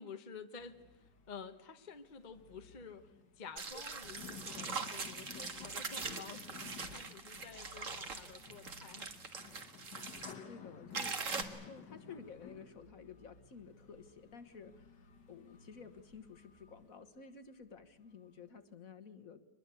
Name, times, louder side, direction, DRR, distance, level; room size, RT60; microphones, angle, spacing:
voice 1, 0.0-3.1 3.4-9.1, left 5 dB, 30° left, 7 dB, 1.0 m, -51 dB
sound 1, 0.6-17.3 17.8-18.4, left 6 dB, 70° left, 2.2 m, -55 dB
sound 2, 3.6-10.3 10.9-11.4, right 4 dB, 45° right, 2.0 m, -42 dB
voice 2, 10.2-11.3 11.6-19.5, left 5 dB, 50° left, 9 dB, 1.7 m, -53 dB
23.5 x 21.0 x 8.3 m, 1.1 s
omnidirectional pair, 2.0 m